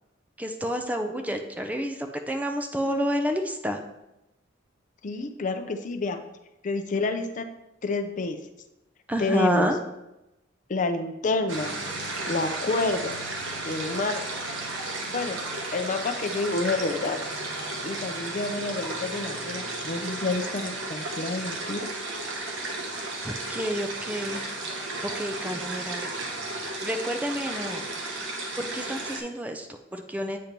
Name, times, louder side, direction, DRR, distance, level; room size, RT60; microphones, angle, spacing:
voice 1, 0.4-3.8 9.1-9.8 23.2-24.4 25.0-26.1 26.8-27.9 28.6-30.4, equal, 10° right, 5 dB, 0.4 m, -29 dB
voice 2, 5.0-6.2 6.6-7.5 7.8-8.4 9.2-9.7 10.7-11.8 12.3-13.2 13.6-14.2 15.0-15.4 15.7-17.2 17.8-21.9, left 3 dB, 40° left, 6 dB, 0.5 m, -29 dB
sound 1, 11.5-29.2, right 2 dB, 70° right, 1.0 m, -34 dB
8.5 x 2.9 x 5.1 m, 0.92 s
head